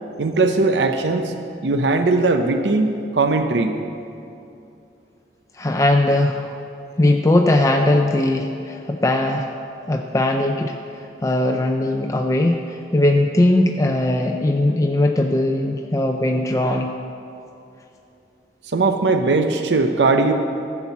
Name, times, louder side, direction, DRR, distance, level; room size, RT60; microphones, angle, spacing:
voice 1, 0.2-1.3 1.6-3.8 18.7-20.3, right 3 dB, 80° right, 7 dB, 0.7 m, -19 dB
voice 2, 5.5-6.6 7.0-9.5 9.9-16.9, left 1 dB, 20° left, 3 dB, 0.4 m, -19 dB
14.5 x 5.9 x 7.1 m, 2.7 s
head